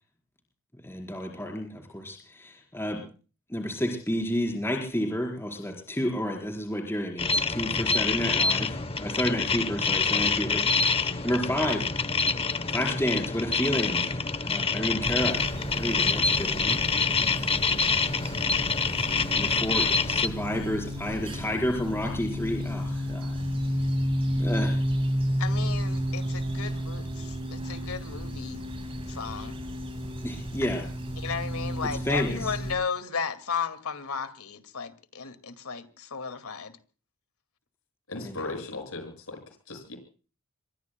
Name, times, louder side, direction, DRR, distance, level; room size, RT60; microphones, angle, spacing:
voice 1, 0.8-3.0 3.5-11.9 12.7-16.8 19.3-23.4 24.4-24.8 27.2-27.3 30.2-30.8 32.0-32.5 38.2-38.4, equal, 10° left, 4.4 m, -31 dB
sound 1, 7.2-20.3, left 4 dB, 25° left, 0.9 m, -26 dB
sound 2, 15.0-32.7, equal, 25° right, 6.6 m, -32 dB
voice 2, 25.4-28.6 29.1-29.5 31.2-36.8, left 6 dB, 90° left, 2.2 m, -34 dB
voice 3, 38.1-39.4 39.7-40.0, left 2 dB, 70° left, 6.7 m, -37 dB
27.0 x 23.0 x 2.2 m
head